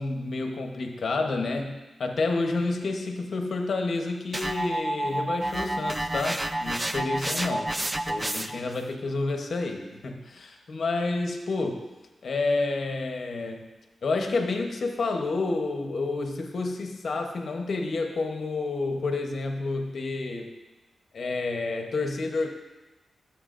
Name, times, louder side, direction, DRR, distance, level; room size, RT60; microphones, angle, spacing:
voice 1, 0.0-7.7 8.1-11.9 12.2-13.7 14.0-20.6 21.1-22.5, left 3 dB, 55° left, 3 dB, 0.9 m, -29 dB
sound 1, 4.3-8.7, right 1 dB, 15° right, 0.4 m, -29 dB
16.5 x 7.2 x 2.5 m, 1.1 s
wide cardioid pair, 145°, 0 cm